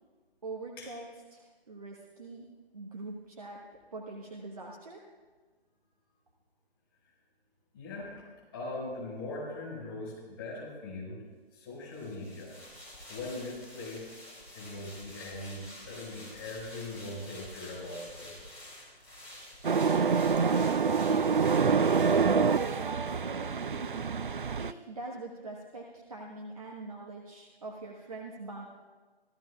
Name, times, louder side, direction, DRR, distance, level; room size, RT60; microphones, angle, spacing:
voice 1, 0.4-2.5 2.7-3.6 3.9-5.0 19.7-24.0 24.6-28.7, right 2 dB, 35° right, -1 dB, 1.2 m, -43 dB
voice 2, 7.7-8.1 8.5-11.2 11.5-12.5 13.1-14.1 14.5-18.3, left 2 dB, 25° left, -5 dB, 5.3 m, -40 dB
sound 1, 11.9-23.5 23.8-24.0, left 1 dB, 5° right, 2.7 m, -49 dB
sound 2, 19.6-24.7, right 5 dB, 55° right, 0.4 m, -26 dB
26.0 x 14.5 x 2.4 m, 1.4 s
figure-of-eight pair, 150°, 31 cm